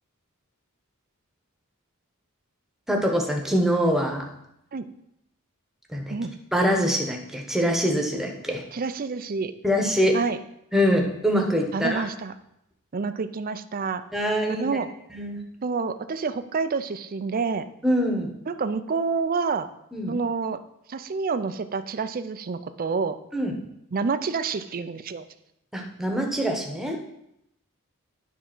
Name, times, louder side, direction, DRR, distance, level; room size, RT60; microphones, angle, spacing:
voice 1, 2.9-4.3 5.9-6.1 6.5-8.6 9.6-10.2 10.7-12.0 14.1-14.7 15.1-15.4 17.8-18.3 19.9-20.1 23.3-23.5 25.7-27.1, equal, ahead, 1 dB, 1.1 m, -24 dB
voice 2, 8.7-9.5 10.1-10.4 11.7-12.3 12.9-14.0 14.5-14.9 15.6-17.7 18.5-19.7 20.1-20.6 20.9-23.2 23.9-25.3, right 4 dB, 40° right, 11 dB, 0.5 m, -28 dB
10.0 x 3.7 x 6.1 m, 0.80 s
head